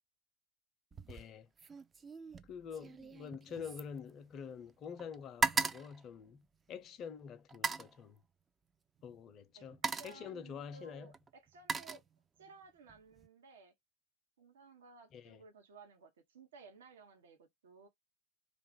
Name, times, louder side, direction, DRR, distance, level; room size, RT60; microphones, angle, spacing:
sound 1, 0.9-1.3 1.6-4.7 5.0-6.9 7.5-8.0 9.0-9.2 9.6-10.3 11.1-12.5 12.9-13.3, right 4 dB, 20° right, 0.3 m, -38 dB
voice 1, 1.1-1.5 2.4-8.2 9.0-11.1 15.1-15.4, left 7 dB, 40° left, 0.5 m, -47 dB
voice 2, 9.5-12.0 12.4-13.7 14.4-17.9, right 4 dB, 75° right, 0.8 m, -57 dB
2.5 x 2.3 x 3.6 m
hypercardioid pair, 95°, 0 cm